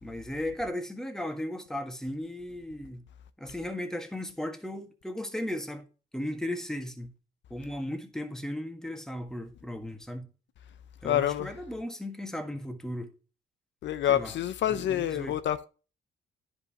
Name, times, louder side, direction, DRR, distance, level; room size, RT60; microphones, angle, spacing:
voice 1, 0.0-3.0 3.4-5.8 6.1-7.1 7.5-10.3 11.0-13.1 14.1-14.3 14.7-15.3, left 1 dB, 5° left, 1.6 m, -36 dB
voice 2, 11.0-11.5 13.8-15.7, left 11 dB, 65° left, 0.5 m, -27 dB
10.5 x 5.3 x 2.9 m
cardioid pair, 90°, 20 cm